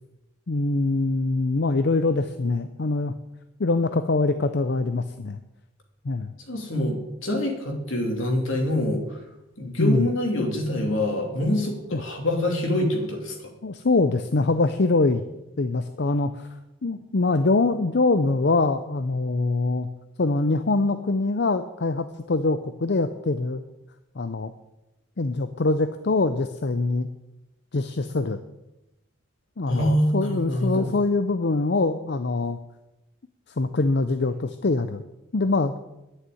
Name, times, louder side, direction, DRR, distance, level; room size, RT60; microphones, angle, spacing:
voice 1, 0.5-3.1 3.6-5.4 6.0-6.3 9.8-10.1 11.9-12.0 13.6-15.2 15.6-19.9 20.2-23.6 24.2-24.5 25.2-27.1 27.7-28.4 29.6-32.6 33.6-35.0 35.3-35.7, left 3 dB, 55° left, 10 dB, 0.6 m, -24 dB
voice 2, 6.5-9.2 9.6-13.5 29.7-30.9, left 1 dB, 75° left, 2 dB, 2.9 m, -25 dB
11.0 x 6.6 x 9.2 m, 0.96 s
head